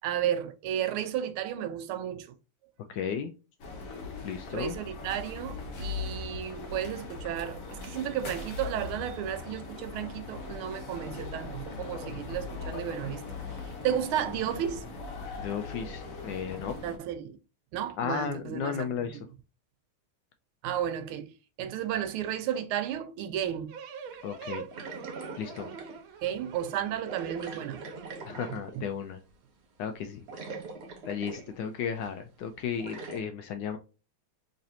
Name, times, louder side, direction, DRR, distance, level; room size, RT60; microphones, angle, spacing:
voice 1, 0.0-2.3 4.5-13.2 13.8-14.9 16.8-17.4 17.7-18.9 20.6-23.7 26.2-27.8, right 10 dB, 90° right, 1.5 m, -33 dB
voice 2, 2.9-3.3 4.2-4.8 6.0-6.2 15.4-16.7 18.0-19.3 24.2-24.7 25.4-25.7 28.2-29.2 29.8-30.2 31.1-33.8, left 7 dB, 75° left, 1.1 m, -34 dB
sound 1, 3.6-17.0, left 4 dB, 50° left, 1.2 m, -40 dB
sound 2, 23.7-28.5, right 6 dB, 75° right, 1.5 m, -44 dB
sound 3, 24.7-26.0 27.0-28.9 30.0-30.1 30.3-31.6 32.0-32.1 32.8-33.2, right 3 dB, 55° right, 0.7 m, -43 dB
3.9 x 3.2 x 2.7 m
omnidirectional pair, 2.3 m